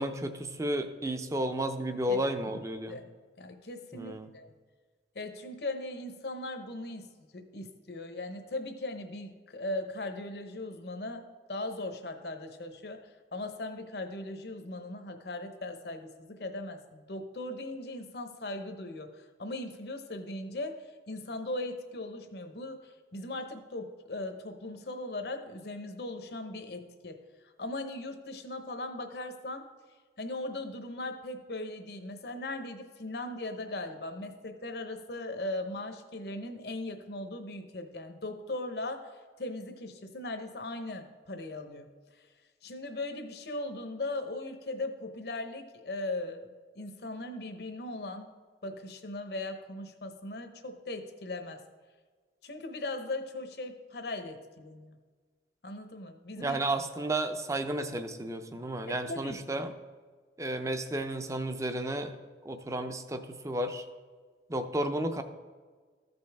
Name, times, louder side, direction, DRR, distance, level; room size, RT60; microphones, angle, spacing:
voice 1, 0.0-3.0 3.9-4.3 56.4-59.7 60.4-62.1 62.5-63.8 64.5-65.2, right 1 dB, 15° right, 8 dB, 0.5 m, -32 dB
voice 2, 2.5-3.0 3.4-4.5 5.1-7.1 7.3-13.0 13.3-20.8 21.1-27.2 27.6-29.6 30.2-39.1 39.4-41.9 42.6-48.3 48.6-51.6 52.4-55.0 55.6-56.6 58.9-59.6, left 2 dB, 65° left, 6 dB, 0.9 m, -39 dB
14.0 x 5.4 x 3.4 m, 1.5 s
head